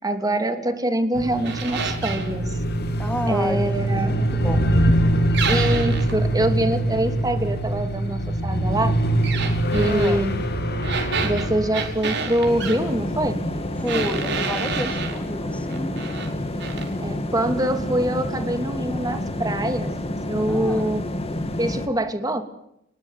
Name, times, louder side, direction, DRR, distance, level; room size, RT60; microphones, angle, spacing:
voice 1, 0.0-2.6 3.3-4.3 5.5-8.9 9.7-10.4 11.2-13.4 17.0-19.9 20.3-21.0 21.6-22.4, right 1 dB, 20° right, 7 dB, 2.9 m, -24 dB
sound 1, 1.1-15.2, right 1 dB, 50° left, 2.9 m, -24 dB
sound 2, 1.4-2.3 5.3-6.2 9.2-10.2 10.8-12.8 13.9-15.2 15.7-16.3 16.6-16.9, right 5 dB, 55° right, 5.1 m, -29 dB
voice 2, 3.0-5.0 9.8-10.2 13.8-16.0 20.5-21.0, equal, 5° left, 6 dB, 3.4 m, -31 dB
sound 3, 12.5-21.9, left 1 dB, 30° left, 2.6 m, -29 dB
29.5 x 21.0 x 9.4 m, 0.79 s
head